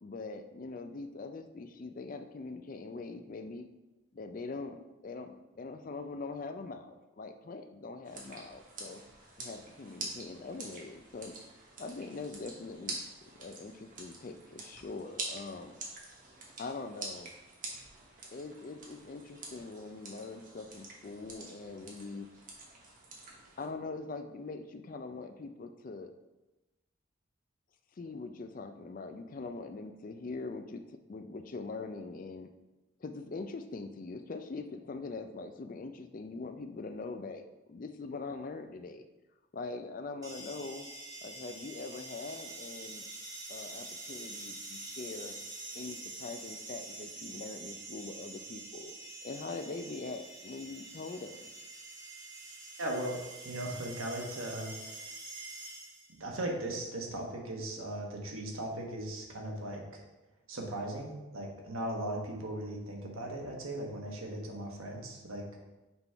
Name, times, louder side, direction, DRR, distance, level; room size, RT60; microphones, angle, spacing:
voice 1, 0.0-3.7 4.1-9.0 9.4-11.4 11.8-13.0 13.4-15.8 16.6-17.3 18.3-22.3 23.6-26.1 28.0-32.5 33.0-37.4 37.7-39.1 39.5-40.9 41.2-43.0 43.5-45.4 45.7-48.9 49.2-51.5, left 3 dB, 40° left, 8 dB, 0.4 m, -42 dB
sound 1, 8.0-23.7, right 2 dB, 40° right, 1.1 m, -46 dB
sound 2, 40.2-56.2, right 2 dB, 20° right, 0.9 m, -46 dB
voice 2, 52.8-55.1 56.1-60.0 60.5-65.4, right 1 dB, 90° right, 0 dB, 1.2 m, -38 dB
6.0 x 3.7 x 4.4 m, 1.0 s
head